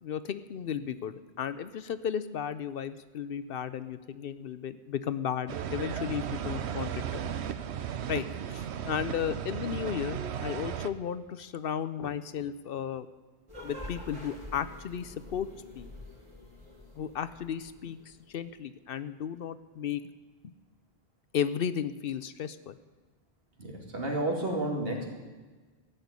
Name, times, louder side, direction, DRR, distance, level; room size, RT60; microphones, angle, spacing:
voice 1, 0.0-7.2 8.1-13.1 13.6-15.5 15.8-15.9 16.9-20.0 20.4-20.5 21.3-22.8, left 8 dB, 65° left, 13 dB, 0.7 m, -34 dB
sound 1, 5.5-10.9, right 9 dB, 90° right, 1.0 m, -35 dB
sound 2, 13.5-18.1, left 1 dB, 30° right, 3.0 m, -46 dB
voice 2, 23.6-25.1, right 1 dB, 65° right, -1 dB, 2.8 m, -31 dB
14.5 x 6.6 x 9.6 m, 1.4 s
omnidirectional pair, 1.1 m